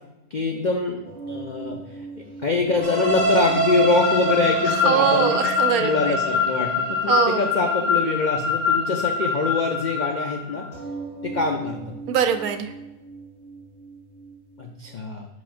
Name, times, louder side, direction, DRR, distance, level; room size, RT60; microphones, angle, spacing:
voice 1, 0.3-1.8 2.4-5.4 5.8-10.7 11.2-11.8 14.6-15.3, left 3 dB, 85° left, 2 dB, 0.4 m, -24 dB
sound 1, 1.0-6.2 6.4-6.5 6.9-7.0 7.3-7.4 10.7-14.9, right 3 dB, 50° left, 2.3 m, -40 dB
Wind instrument woodwind instrument, 2.4-6.6, left 7 dB, 25° right, 1.2 m, -39 dB
sound 2, 2.8-10.6, left 3 dB, 5° left, 1.6 m, -24 dB
voice 2, 4.8-6.2 7.1-7.5 12.1-12.7, right 8 dB, 75° right, 9 dB, 1.1 m, -22 dB
10.5 x 4.1 x 2.5 m, 0.98 s
omnidirectional pair, 1.6 m